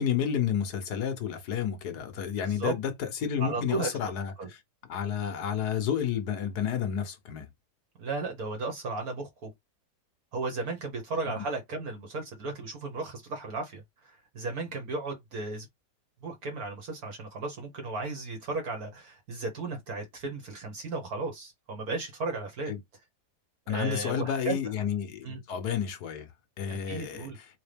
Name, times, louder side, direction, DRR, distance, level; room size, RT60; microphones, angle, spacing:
voice 1, 0.0-4.6 4.9-7.5 11.4-11.5 22.7-22.8 23.7-26.3 26.6-27.3, left 8 dB, 70° left, 1.4 m, -31 dB
voice 2, 2.4-2.7 3.4-3.9 4.4-4.5 8.0-9.5 10.3-15.7 16.2-22.7 23.7-24.7 25.2-25.4 26.7-27.4, right 3 dB, 60° right, 1.7 m, -35 dB
3.8 x 3.6 x 3.4 m
omnidirectional pair, 1.8 m